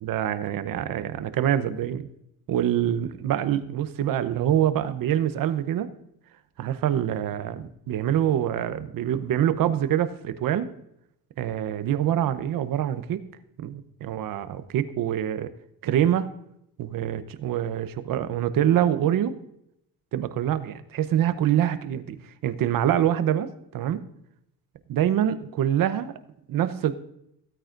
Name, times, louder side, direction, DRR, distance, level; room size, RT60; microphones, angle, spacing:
voice 1, 0.0-2.1 2.5-5.9 6.6-10.7 11.4-13.3 13.6-15.5 15.8-16.3 16.8-19.4 20.1-22.2 22.4-24.0 24.9-26.1 26.5-27.0, right 10 dB, 65° right, 12 dB, 0.9 m, -25 dB
16.0 x 8.8 x 2.6 m, 0.78 s
cardioid pair, 120°, 37 cm